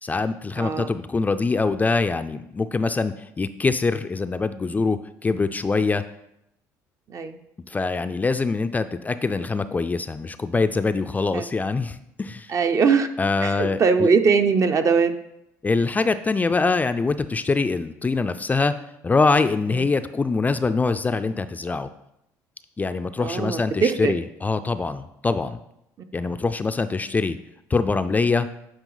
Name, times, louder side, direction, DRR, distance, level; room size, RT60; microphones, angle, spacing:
voice 1, 0.0-6.0 7.7-12.5 13.2-14.1 15.6-18.7 19.0-21.9 22.8-25.6 26.1-27.4 27.7-28.5, left 4 dB, 20° left, 10 dB, 0.4 m, -24 dB
voice 2, 0.6-0.9 7.1-7.4 11.3-11.4 12.5-13.1 13.4-15.1 19.7-19.8 23.2-24.1, right 5 dB, 45° right, 8 dB, 0.7 m, -21 dB
9.0 x 4.9 x 3.9 m, 0.81 s
supercardioid pair, 90°, 8 cm